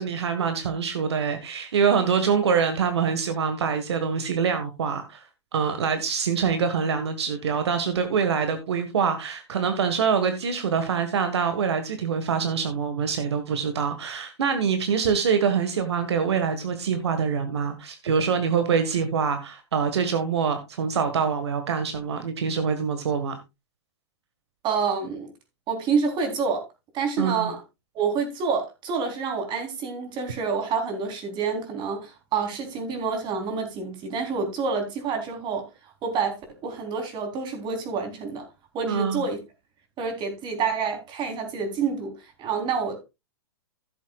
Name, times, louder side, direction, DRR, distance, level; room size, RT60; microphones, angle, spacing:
voice 1, 0.0-5.2 5.5-23.4 27.2-27.5 38.9-39.2, right 6 dB, 75° right, 1.6 m, -25 dB
voice 2, 24.6-25.3 25.7-26.7 26.9-27.6 27.9-35.7 36.0-38.5 38.7-39.4 40.0-42.1 42.4-43.0, right 5 dB, 35° right, 3.7 m, -28 dB
15.5 x 7.6 x 2.4 m
hypercardioid pair, 115°, 14 cm